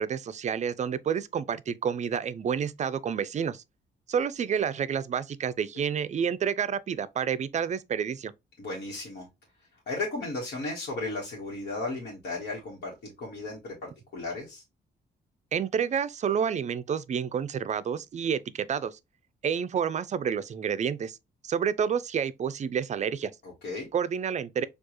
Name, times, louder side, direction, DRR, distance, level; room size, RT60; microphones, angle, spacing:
voice 1, 0.0-3.6 4.1-8.3 15.5-19.0 19.4-21.2 21.4-23.3 23.9-24.6, right 7 dB, 40° right, 0.4 m, -29 dB
voice 2, 8.6-9.3 9.9-14.6 23.4-23.9, left 2 dB, 65° left, 1.4 m, -35 dB
4.5 x 2.4 x 2.9 m
cardioid pair, 95°, 18 cm